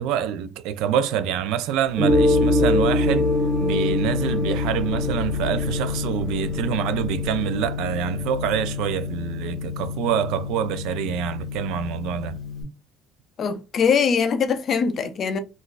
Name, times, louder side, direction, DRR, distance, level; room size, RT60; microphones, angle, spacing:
voice 1, 0.0-3.3 3.6-12.4, right 9 dB, 85° right, 0.3 m, -26 dB
Gong, 2.0-12.6, left 2 dB, 20° right, 1.6 m, -25 dB
sound 1, 2.1-9.8, left 4 dB, 5° right, 1.0 m, -34 dB
voice 2, 13.4-15.4, left 6 dB, 35° left, 0.3 m, -22 dB
3.8 x 2.4 x 2.4 m
cardioid pair, 175°, 0 cm